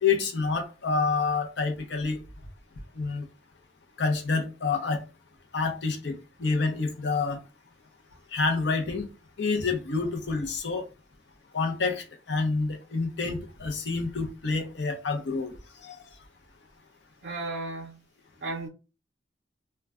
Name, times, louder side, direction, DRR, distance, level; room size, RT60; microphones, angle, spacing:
voice 1, 0.0-2.2 2.9-3.2 4.0-5.0 5.5-6.1 6.4-7.4 8.3-9.1 9.4-10.9 11.5-15.5 15.8-16.0, left 4 dB, 75° left, 0.6 m, -28 dB
voice 2, 17.2-18.0 18.4-18.7, right 2 dB, 65° right, 0.6 m, -34 dB
2.3 x 2.2 x 3.5 m
head